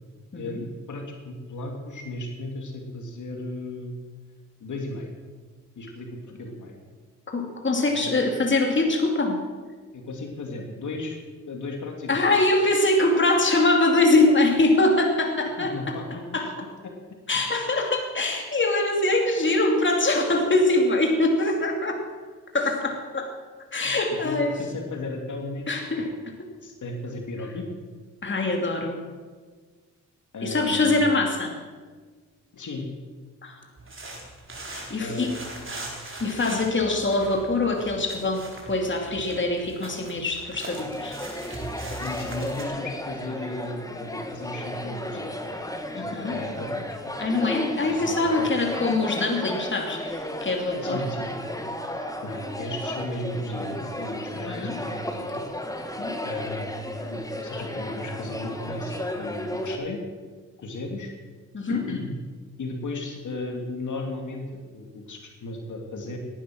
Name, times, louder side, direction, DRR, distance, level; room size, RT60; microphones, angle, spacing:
voice 1, 0.3-4.0 4.6-5.1 5.8-6.8 7.9-8.2 9.9-11.2 11.5-12.2 15.6-16.2 24.2-25.7 25.9-26.1 26.6-27.6 30.3-31.1 32.5-32.9 35.0-35.3 42.0-45.3 46.0-47.0 47.9-48.5 50.7-51.3 51.9-55.4 56.2-60.0 60.6-61.1 61.7-62.1 62.6-66.2, left 2 dB, 65° left, 2 dB, 3.0 m, -35 dB
voice 2, 7.3-9.4 12.1-16.0 16.3-16.5 17.3-22.0 22.5-23.3 23.7-24.5 25.7-26.1 28.2-29.0 30.4-31.6 33.4-33.6 34.7-35.3 36.2-41.2 45.9-46.4 47.2-51.0 54.4-54.8 56.0-56.1 61.5-61.8, left 2 dB, 35° left, 2 dB, 2.8 m, -23 dB
sound 1, 33.8-42.6, right 2 dB, 40° right, 4.2 m, -40 dB
sound 2, 40.7-59.8, left 1 dB, 10° left, 1.9 m, -34 dB
17.5 x 12.0 x 6.3 m, 1.4 s
cardioid pair, 65°, 32 cm